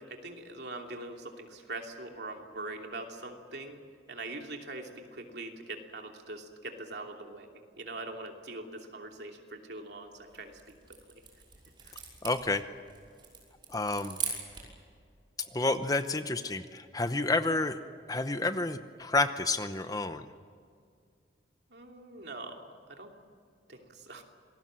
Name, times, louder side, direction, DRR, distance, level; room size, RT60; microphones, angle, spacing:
voice 1, 0.0-3.8 4.1-7.5 7.8-10.6 11.9-12.0 21.7-22.6 22.9-23.1 23.7-24.2, right 2 dB, 65° right, 2 dB, 2.9 m, -42 dB
sound 1, 10.1-14.8, right 6 dB, 25° right, 5.9 m, -42 dB
voice 2, 12.2-12.6 13.7-14.2 15.5-17.8 18.1-20.3, left 2 dB, 20° left, 10 dB, 0.8 m, -30 dB
27.0 x 19.5 x 7.6 m, 2.2 s
head